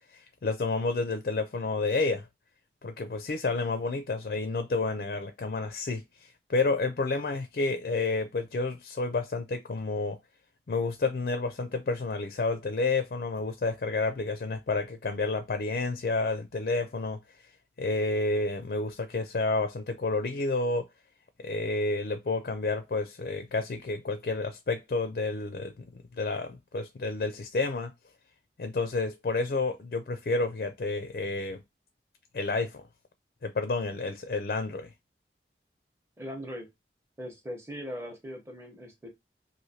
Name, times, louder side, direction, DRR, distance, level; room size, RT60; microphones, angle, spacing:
voice 1, 0.1-2.3 2.8-10.2 10.7-17.2 17.8-20.9 21.4-25.9 26.1-27.9 28.6-31.6 32.3-32.9 33.4-34.9, left 3 dB, 55° left, 0.4 m, -30 dB
voice 2, 36.2-36.7 37.2-39.1, equal, 15° right, 0.8 m, -40 dB
3.1 x 2.5 x 2.7 m
head